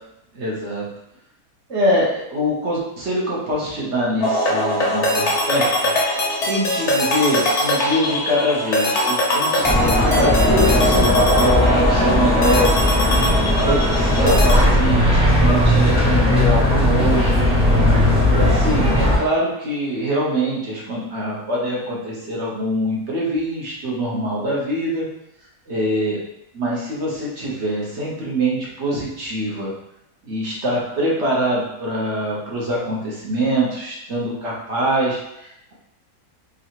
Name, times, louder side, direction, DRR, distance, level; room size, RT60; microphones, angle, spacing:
voice 1, 0.3-0.9 1.7-5.9 6.5-12.8 13.6-17.5 18.3-25.1 25.7-26.2 26.5-29.7 30.2-35.7, equal, 50° right, -5 dB, 1.2 m, -24 dB
sound 1, 4.2-14.5, left 1 dB, 50° left, 1.0 m, -21 dB
sound 2, 9.6-19.2, left 1 dB, 5° right, 0.8 m, -17 dB
3.8 x 3.1 x 2.9 m, 0.83 s
omnidirectional pair, 1.7 m